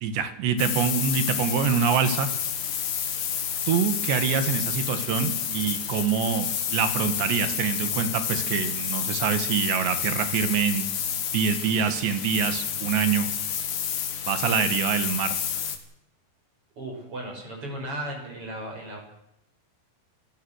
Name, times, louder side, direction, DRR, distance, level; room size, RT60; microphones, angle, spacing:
voice 1, 0.0-2.3 3.7-13.3 14.3-15.4, right 7 dB, 85° right, 9 dB, 4.2 m, -25 dB
sound 1, 0.6-15.8, left 8 dB, 75° left, 4.3 m, -30 dB
voice 2, 16.8-19.0, right 1 dB, 30° right, 1 dB, 7.4 m, -35 dB
28.0 x 16.5 x 6.6 m, 0.82 s
omnidirectional pair, 4.9 m